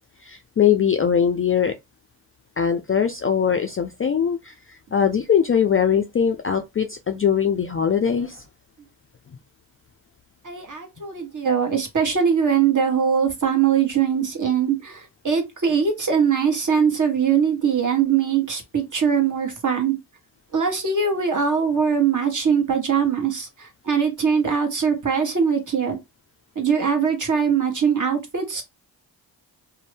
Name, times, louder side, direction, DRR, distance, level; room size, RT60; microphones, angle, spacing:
voice 1, 0.2-1.7 2.6-8.4, left 7 dB, 30° left, 0.3 m, -21 dB
voice 2, 10.4-20.0 20.5-26.0 26.5-28.6, right 7 dB, 40° right, 1.1 m, -21 dB
2.6 x 2.1 x 3.2 m
cardioid pair, 65°, 46 cm